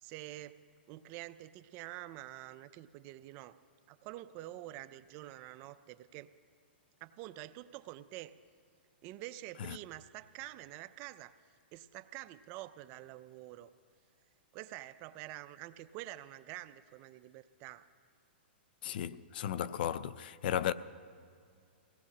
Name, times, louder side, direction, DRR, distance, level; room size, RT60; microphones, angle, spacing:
voice 1, 0.0-0.6 0.9-3.6 3.9-6.3 7.0-8.3 9.0-11.3 11.7-13.7 14.5-17.9, right 15 dB, 35° right, 0.4 m, -47 dB
voice 2, 18.8-20.7, left 11 dB, 60° left, 0.4 m, -35 dB
22.0 x 17.5 x 2.8 m
hypercardioid pair, 140°, 6 cm